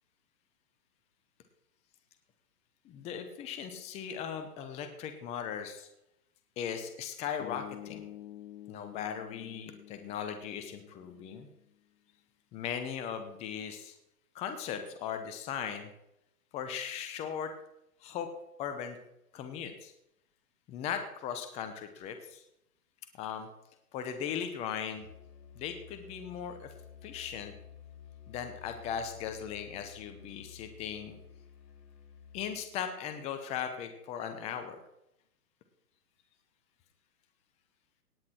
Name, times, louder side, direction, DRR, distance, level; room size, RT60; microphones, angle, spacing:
voice 1, 2.8-5.9 6.6-8.0 8.7-11.5 12.5-13.9 14.3-15.9 16.5-17.5 18.0-18.3 18.6-19.0 19.3-19.9 20.7-22.4 23.2-23.5 23.9-25.1 25.6-26.7 27.0-27.5 28.3-31.2 32.3-34.8, left 8 dB, 15° left, 7 dB, 0.8 m, -38 dB
sound 1, 7.4-11.6, left 13 dB, 45° left, 1.2 m, -49 dB
Musical instrument, 24.9-32.7, left 7 dB, 90° left, 3.7 m, -52 dB
18.0 x 8.3 x 4.4 m, 0.81 s
hypercardioid pair, 140°, 46 cm